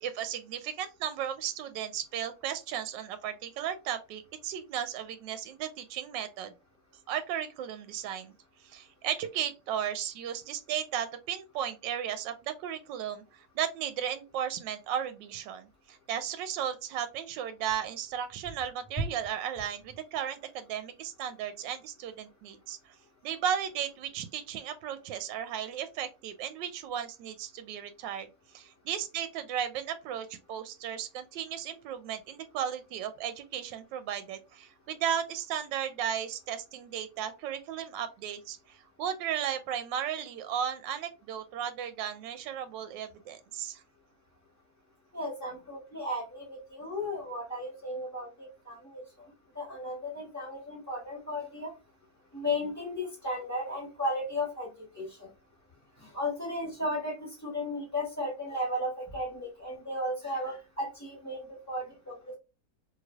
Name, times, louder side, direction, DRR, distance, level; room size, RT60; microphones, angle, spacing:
voice 1, 0.0-6.5 7.1-8.3 8.6-22.9 23.2-28.3 28.5-43.8, right 9 dB, 85° right, 1.3 m, -35 dB
voice 2, 45.1-49.0 49.5-51.7 52.3-54.7 54.9-55.3 56.0-62.4, left 1 dB, 10° left, 1.7 m, -35 dB
3.2 x 3.0 x 2.3 m
omnidirectional pair, 1.9 m